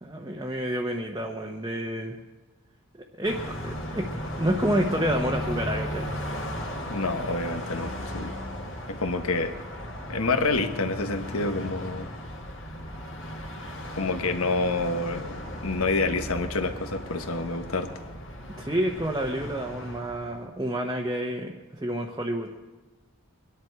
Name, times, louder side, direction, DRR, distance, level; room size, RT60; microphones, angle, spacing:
voice 1, 0.0-2.2 3.2-4.1 4.4-6.1 18.6-22.5, right 1 dB, 15° right, 0 dB, 0.9 m, -29 dB
Car passing by, 3.2-20.4, equal, 60° left, 2.1 m, -36 dB
voice 2, 6.9-8.3 8.9-9.6 10.1-12.1 14.0-17.9, left 3 dB, 80° left, 7 dB, 1.2 m, -28 dB
23.0 x 11.0 x 4.8 m, 1.2 s
head